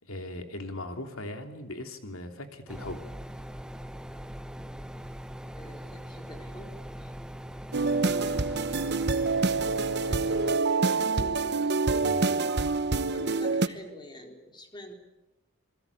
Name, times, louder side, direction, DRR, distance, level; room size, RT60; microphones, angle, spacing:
voice 1, 0.0-3.0 12.0-12.3, left 1 dB, 85° left, 6 dB, 3.2 m, -39 dB
sound 1, 2.7-10.6, equal, 5° right, 0.9 m, -41 dB
voice 2, 5.5-6.7 7.0-7.1 10.0-12.2 13.1-14.9, left 1 dB, 20° left, 4 dB, 3.9 m, -47 dB
sound 2, 7.7-13.7, right 3 dB, 55° right, 1.0 m, -26 dB
27.5 x 20.5 x 8.5 m, 1.0 s
head